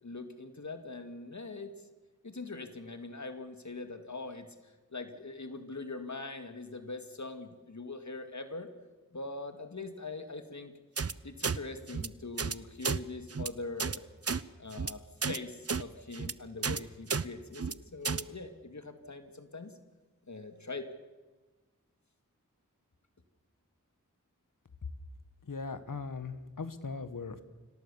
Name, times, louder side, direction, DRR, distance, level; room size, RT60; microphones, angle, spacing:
voice 1, 0.0-1.8 2.2-8.7 9.1-10.7 11.2-14.0 14.6-19.8 20.3-20.9, left 3 dB, 60° left, 8 dB, 2.1 m, -42 dB
sound 1, 11.0-11.1 11.4-11.6 11.9-12.1 12.4-12.5 12.8-13.0 13.3-13.5 13.8-14.0 14.2-14.4 14.7-14.9 15.2-15.4 15.7-15.8 16.1-16.3 16.6-16.8 17.1-17.2 17.5-17.7 18.0-18.2, right 5 dB, 50° right, 0.8 m, -32 dB
voice 2, 25.4-27.4, left 4 dB, 80° left, 11 dB, 1.6 m, -39 dB
26.0 x 17.5 x 7.2 m, 1.3 s
wide cardioid pair, 50°, 32 cm